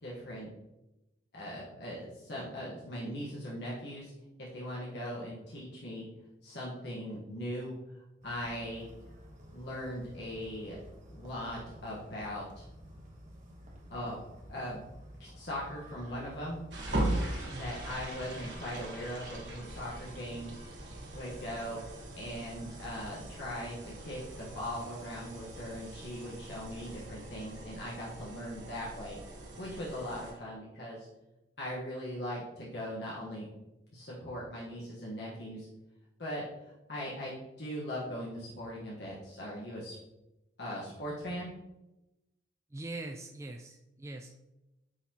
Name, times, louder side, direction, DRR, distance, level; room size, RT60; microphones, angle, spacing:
voice 1, 0.0-0.5 1.3-4.1 4.4-6.1 6.4-8.9 9.5-10.8 11.1-12.6 13.9-14.2 14.5-14.8 15.2-16.6 17.5-20.5 21.1-31.1 31.6-33.5 33.9-35.7 36.2-40.0 40.6-41.5, equal, 60° left, -5 dB, 1.2 m, -40 dB
sound 1, 8.2-27.5, equal, 40° right, 1.1 m, -53 dB
sound 2, 16.7-30.3, right 1 dB, 70° right, 1.4 m, -40 dB
voice 2, 42.7-44.4, right 2 dB, 15° right, 3 dB, 0.3 m, -42 dB
9.8 x 4.1 x 2.9 m, 0.96 s
head